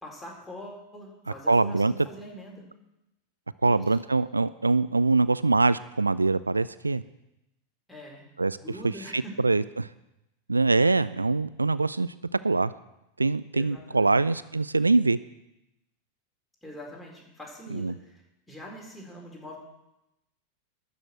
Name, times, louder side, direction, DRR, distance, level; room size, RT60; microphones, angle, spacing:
voice 1, 0.0-2.6 3.6-3.8 7.9-8.3 8.6-9.5 13.5-14.2 16.6-18.1 18.5-19.6, equal, 5° left, -2 dB, 4.2 m, -43 dB
voice 2, 1.5-1.9 3.6-7.0 8.4-8.6 9.1-9.9 10.5-12.1 12.4-12.7 13.2-15.2 17.7-17.9, right 3 dB, 80° right, 17 dB, 0.3 m, -23 dB
12.5 x 6.2 x 8.9 m, 0.90 s
figure-of-eight pair, 90°, 0 cm